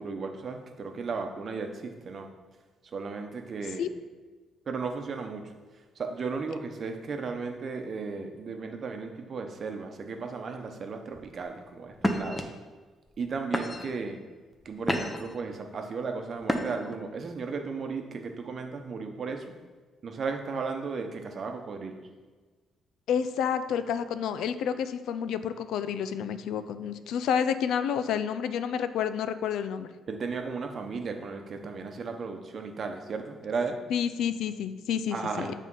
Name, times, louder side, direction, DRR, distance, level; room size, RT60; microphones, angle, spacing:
voice 1, 0.0-2.3 2.8-3.9 4.7-5.5 6.0-12.5 13.2-14.2 14.6-19.6 20.0-22.1 30.1-33.8 35.1-35.5, right 4 dB, 50° right, 5 dB, 0.9 m, -35 dB
sound 1, 11.1-11.4 12.0-12.4 13.1-13.2 13.5-14.0 14.5-15.3 16.4-17.0, equal, 10° left, 0.8 m, -30 dB
voice 2, 23.1-29.9 33.9-35.5, left 8 dB, 80° left, 11 dB, 0.4 m, -29 dB
7.4 x 3.6 x 5.5 m, 1.4 s
cardioid pair, 90°, 0 cm